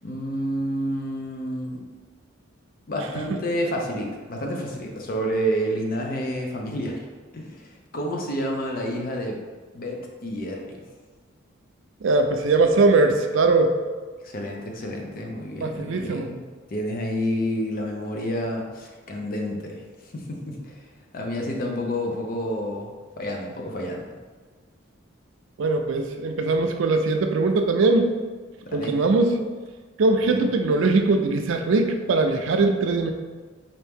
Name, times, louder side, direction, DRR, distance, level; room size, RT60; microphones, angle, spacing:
voice 1, 0.0-1.8 2.9-7.0 7.3-9.4 9.7-10.9 14.2-16.4 16.7-19.8 20.1-20.8 21.1-22.9 23.2-24.1 28.7-29.0 30.3-30.4, equal, 45° left, 1 dB, 0.6 m, -29 dB
voice 2, 12.0-13.7 15.6-16.3 25.6-28.1 28.7-29.4 30.0-33.1, right 3 dB, 70° right, 6 dB, 0.4 m, -21 dB
4.4 x 2.7 x 3.5 m, 1.4 s
head